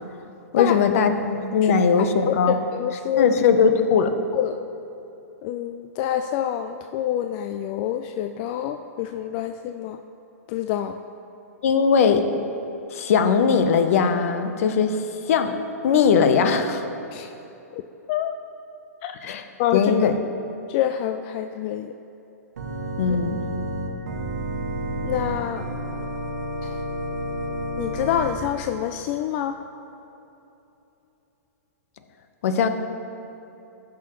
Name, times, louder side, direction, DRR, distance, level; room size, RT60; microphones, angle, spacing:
voice 1, 0.5-2.6 3.2-4.1 11.6-12.2 12.9-15.0 15.3-15.5 15.8-16.9 19.2-19.4 19.7-20.2 23.0-23.4 32.4-32.7, left 6 dB, 60° left, 8 dB, 0.7 m, -19 dB
voice 2, 2.7-3.3 4.3-4.6 5.4-10.0 10.5-11.0 17.1-17.3 17.7-17.8 18.1-18.3 19.0-19.2 19.6-20.1 20.7-21.9 25.0-25.6 26.6-26.8 27.8-29.6, left 11 dB, 40° left, 7 dB, 0.3 m, -26 dB
Organ, 22.6-28.4, right 1 dB, 80° right, 1.2 m, -30 dB
14.5 x 6.2 x 3.1 m, 3.0 s
hypercardioid pair, 125°, 9 cm